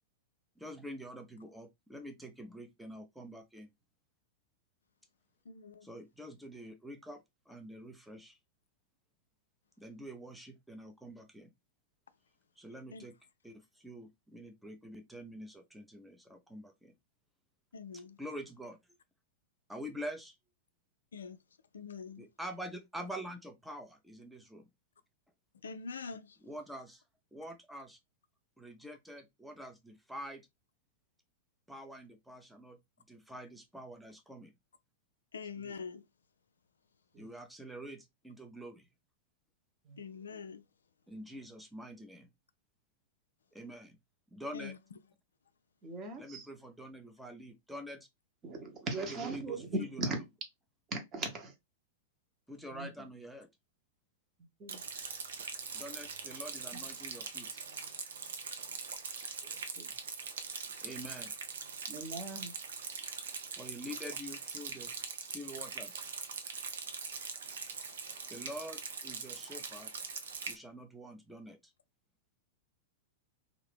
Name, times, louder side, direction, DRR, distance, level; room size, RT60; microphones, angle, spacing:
voice 1, 0.6-3.7 5.8-8.4 9.8-11.5 12.6-13.1 13.4-16.9 18.2-18.8 19.7-20.4 22.2-24.7 26.4-27.0 27.3-28.0 28.6-30.4 31.7-32.8 33.1-34.5 37.2-38.9 41.1-42.3 43.5-44.0 44.3-44.7 46.2-48.1 49.0-50.2 52.5-53.5 55.7-57.6 60.8-61.3 63.5-66.0 68.3-69.9 70.5-71.7, equal, 5° right, 0.6 m, -46 dB
voice 2, 5.5-5.9 12.9-13.1 17.7-18.2 21.1-21.4 21.7-22.3 25.6-26.4 35.3-36.1 40.0-40.6 44.5-44.8, left 5 dB, 70° left, 0.3 m, -44 dB
voice 3, 45.8-46.4 48.4-50.2 50.9-51.5 52.7-53.1 54.6-54.8 59.4-59.9 61.9-62.5, right 2 dB, 25° right, 1.0 m, -39 dB
Rain, 54.7-70.6, right 5 dB, 65° right, 0.6 m, -42 dB
2.7 x 2.5 x 3.4 m
figure-of-eight pair, 95°, 0 cm